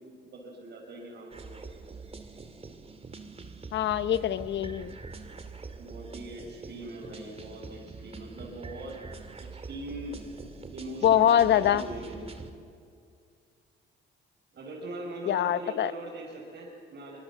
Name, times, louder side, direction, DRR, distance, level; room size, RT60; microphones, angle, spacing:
voice 1, 0.3-1.7 5.8-8.9 9.6-10.2 10.7-12.2 14.5-17.2, right 1 dB, 60° right, -4 dB, 6.2 m, -41 dB
sound 1, 1.3-12.5, right 4 dB, 30° right, 2.6 m, -44 dB
voice 2, 3.7-4.9 11.0-11.8 15.3-15.9, left 10 dB, 65° left, 13 dB, 0.9 m, -24 dB
26.0 x 25.5 x 7.5 m, 2.3 s
cardioid pair, 90°, 20 cm